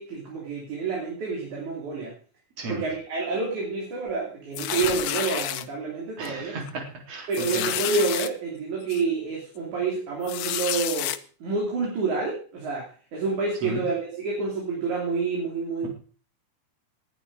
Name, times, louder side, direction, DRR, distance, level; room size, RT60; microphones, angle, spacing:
voice 1, 0.0-2.1 2.7-6.6 7.3-11.1 11.4-15.9, right 4 dB, 70° right, -2 dB, 4.5 m, -28 dB
sound 1, 4.5-5.6 6.3-6.4 6.7-6.8 7.3-8.3 8.9-9.0 10.2-11.2, left 12 dB, 80° left, 1.3 m, -29 dB
voice 2, 6.2-7.7 13.6-13.8, right 2 dB, 50° right, 1 dB, 4.7 m, -34 dB
19.0 x 9.9 x 4.8 m, 0.41 s
omnidirectional pair, 3.6 m